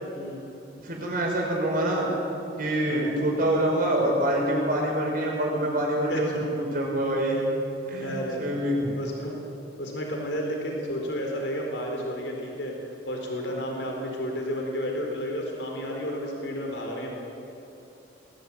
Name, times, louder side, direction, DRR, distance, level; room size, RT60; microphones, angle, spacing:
voice 1, 0.1-0.5 2.9-3.2 6.1-6.4 8.0-8.5 9.0-9.3 9.8-12.8 13.1-17.1, equal, 70° left, 0 dB, 4.6 m, -31 dB
voice 2, 0.8-2.1 2.6-6.3 6.7-7.4 7.9-8.9, right 1 dB, 50° right, -2 dB, 5.8 m, -26 dB
21.5 x 17.0 x 8.8 m, 2.9 s
head